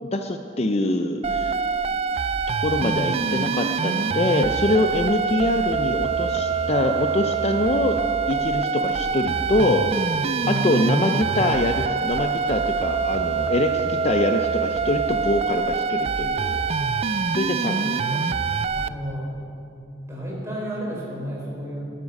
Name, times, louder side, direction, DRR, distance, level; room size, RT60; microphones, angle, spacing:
voice 1, 0.0-1.5 2.6-8.0 8.3-9.9 10.5-16.6 17.3-18.0, left 1 dB, 35° left, 6 dB, 0.6 m, -24 dB
sound 1, 1.2-18.9, right 5 dB, 35° right, 0.4 m, -25 dB
voice 2, 10.4-11.1 17.8-18.2 18.7-19.3 20.0-21.8, equal, 15° right, -4 dB, 4.3 m, -31 dB
20.5 x 9.7 x 5.4 m, 2.7 s
head